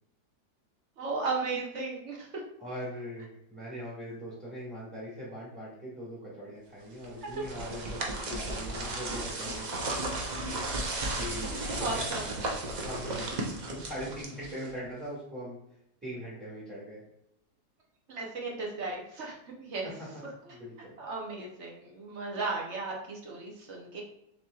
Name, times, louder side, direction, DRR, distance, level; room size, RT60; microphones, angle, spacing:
voice 1, 1.0-2.4 7.2-7.5 11.8-12.3 18.1-19.9 20.4-20.6 21.0-24.0, right 3 dB, 50° right, -2 dB, 1.0 m, -35 dB
voice 2, 2.6-9.9 11.2-12.1 12.8-13.3 13.6-15.6 16.0-17.0 20.5-21.0, equal, 5° right, -8 dB, 1.3 m, -41 dB
sound 1, 7.0-14.8, right 2 dB, 80° right, 0.4 m, -34 dB
6.7 x 3.0 x 2.3 m, 0.79 s
omnidirectional pair, 1.8 m